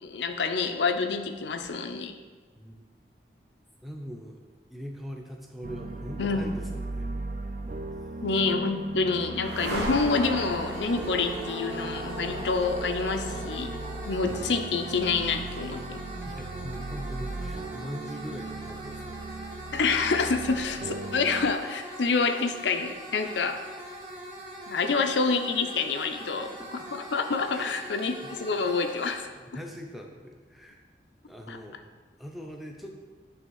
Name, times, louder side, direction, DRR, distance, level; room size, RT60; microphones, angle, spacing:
voice 1, 0.0-2.2 6.2-6.5 8.2-13.7 14.0-16.0 19.7-23.6 24.7-26.5 26.9-29.3 31.5-31.6, left 4 dB, 85° left, 7 dB, 0.6 m, -27 dB
voice 2, 3.8-4.4 4.7-7.1 16.3-19.7 23.2-23.5 26.0-26.7 27.5-27.8 29.4-30.8 31.3-31.8 32.2-32.9, equal, ahead, 1 dB, 0.6 m, -42 dB
sound 1, 5.6-21.5, right 3 dB, 45° right, 0.3 m, -38 dB
sound 2, 8.7-18.2, equal, 80° right, 1.2 m, -39 dB
sound 3, 10.0-29.1, equal, 25° right, 1.5 m, -42 dB
9.6 x 3.4 x 4.7 m, 1.4 s
head